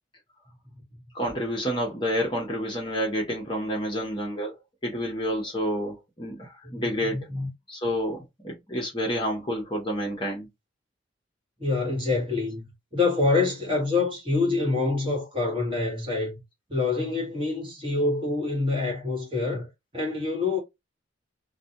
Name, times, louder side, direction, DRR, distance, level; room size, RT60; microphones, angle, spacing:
voice 1, 1.1-4.6 4.8-7.3 7.7-10.5, equal, 25° left, 0.8 m, -29 dB
voice 2, 6.6-7.5 11.6-16.4 16.7-20.6, left 3 dB, 25° right, 1.2 m, -26 dB
2.3 x 2.2 x 2.7 m
head